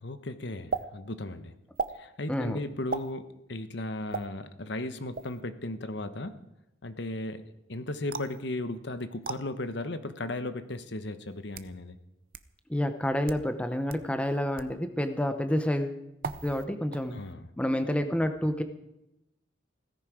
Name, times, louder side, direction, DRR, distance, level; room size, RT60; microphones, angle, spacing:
voice 1, 0.0-1.5 1.9-6.4 6.8-12.0 17.1-17.5, left 2 dB, 60° left, 10 dB, 1.1 m, -36 dB
sound 1, 0.7-0.8 1.7-2.0 2.9-3.1 4.1-4.3 5.1-5.4 8.1-8.4 9.2-9.4 10.3-10.4 11.3-11.7 12.3-12.4 13.1-13.4 13.9-14.0 14.6-14.7 16.2-16.6 16.9-17.3, right 4 dB, 45° right, 0.7 m, -35 dB
voice 2, 2.3-2.6 12.7-16.0 16.4-17.2 17.6-18.6, equal, 5° left, 7 dB, 0.8 m, -29 dB
17.0 x 15.0 x 5.0 m, 0.87 s
head